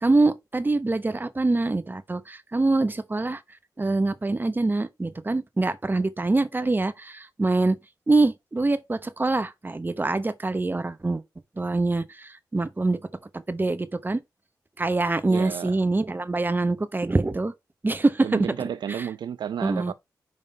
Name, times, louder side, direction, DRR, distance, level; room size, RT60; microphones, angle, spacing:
voice 1, 0.0-3.4 3.8-7.8 8.1-11.2 11.6-13.0 13.3-14.2 14.8-17.5 17.8-18.5 18.9-19.1 19.6-19.9, right 2 dB, 25° right, 1.0 m, -24 dB
voice 2, 15.3-15.8 18.2-19.9, right 9 dB, 80° right, 0.4 m, -32 dB
5.3 x 3.5 x 5.4 m
cardioid pair, 50°, 7 cm